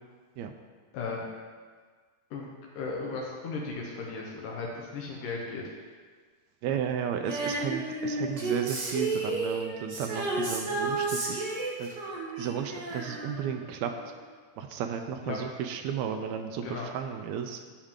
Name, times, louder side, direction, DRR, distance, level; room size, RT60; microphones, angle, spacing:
voice 1, 0.9-1.2 2.3-2.5 2.8-5.6 15.2-15.4 16.6-16.9, left 4 dB, 80° left, -2 dB, 2.6 m, -36 dB
voice 2, 6.6-11.5 11.8-11.9 12.4-13.9 14.6-17.6, right 8 dB, 85° right, 5 dB, 1.6 m, -33 dB
Female singing, 7.3-13.9 14.2-14.3, right 2 dB, 55° right, 1.1 m, -32 dB
12.5 x 4.9 x 3.6 m, 1.5 s
omnidirectional pair, 3.7 m